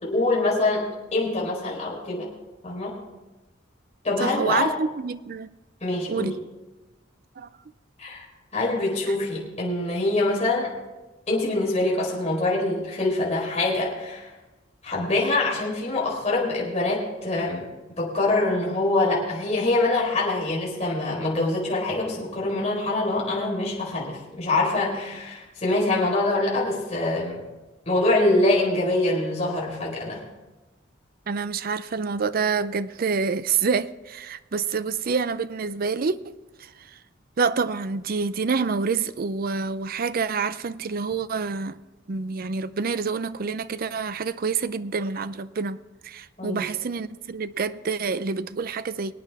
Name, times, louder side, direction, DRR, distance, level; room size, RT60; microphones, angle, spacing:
voice 1, 0.0-2.3 2.6-2.9 4.0-4.7 5.8-6.3 8.0-8.3 8.5-10.7 11.3-14.3 14.8-17.7 18.0-27.4 27.9-30.2 46.4-46.6, left 2 dB, 35° left, 4.2 m, -24 dB
voice 2, 4.2-5.5 6.1-6.4 7.4-7.5 31.3-36.9 37.4-41.8 42.1-45.8 46.0-49.1, right 5 dB, 50° right, 0.5 m, -27 dB
24.0 x 9.2 x 3.5 m
head